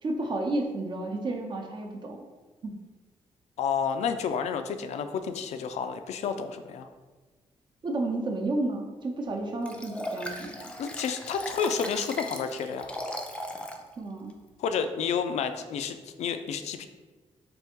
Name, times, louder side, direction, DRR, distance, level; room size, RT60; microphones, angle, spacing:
voice 1, 0.0-2.2 2.6-2.7 7.8-10.7 14.0-14.4, right 2 dB, 45° right, 1 dB, 0.7 m, -31 dB
voice 2, 3.6-6.9 10.8-12.9 14.6-16.9, left 6 dB, 80° left, 8 dB, 0.4 m, -30 dB
Liquid, 9.6-13.8 14.3-14.4, left 1 dB, 10° left, 0.4 m, -37 dB
3.5 x 3.3 x 4.5 m, 1.3 s
wide cardioid pair, 140°, 11 cm